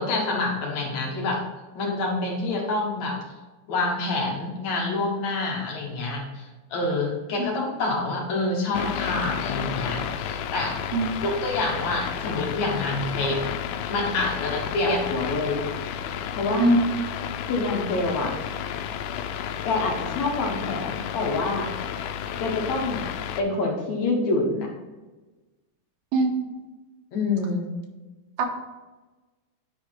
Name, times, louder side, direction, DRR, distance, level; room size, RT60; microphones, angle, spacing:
voice 1, 0.0-1.4 1.7-3.2 3.7-10.8 11.2-13.4 13.9-15.6 16.4-16.7 17.5-18.3 19.6-21.7 22.4-23.1 23.4-24.7 27.1-27.7, left 2 dB, 60° left, -1 dB, 2.3 m, -27 dB
sound 1, 8.7-23.4, left 8 dB, 85° left, 2.4 m, -32 dB
voice 2, 26.1-26.5 28.4-28.5, right 2 dB, 80° right, 2 dB, 3.0 m, -21 dB
9.5 x 4.8 x 4.5 m, 1.2 s
omnidirectional pair, 4.2 m